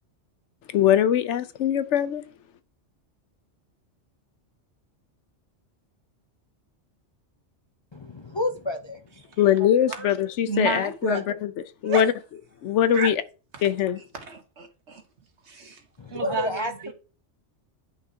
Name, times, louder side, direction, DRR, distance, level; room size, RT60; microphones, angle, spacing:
voice 1, 0.7-2.2 9.4-11.5 11.8-12.1 12.6-13.2 13.6-14.0, left 10 dB, 80° left, 1.0 m, -22 dB
voice 2, 7.9-9.2 16.0-16.9, left 2 dB, 35° left, 0.5 m, -30 dB
voice 3, 10.5-11.4 11.8-12.1 12.9-13.1 13.5-13.7 14.1-15.0 15.5-15.8 16.1-16.9, right 4 dB, 70° right, 1.6 m, -31 dB
10.0 x 6.1 x 2.8 m
omnidirectional pair, 1.2 m